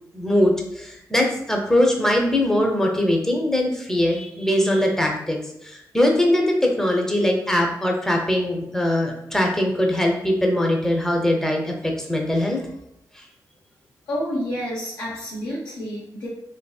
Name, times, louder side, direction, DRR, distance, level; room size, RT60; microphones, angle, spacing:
voice 1, 0.1-12.6 13.1-13.2, left 1 dB, 5° left, 0 dB, 0.6 m, -21 dB
voice 2, 14.1-16.3, equal, 70° left, -7 dB, 0.7 m, -29 dB
2.8 x 2.7 x 2.3 m, 0.80 s
cardioid pair, 65°, 7 cm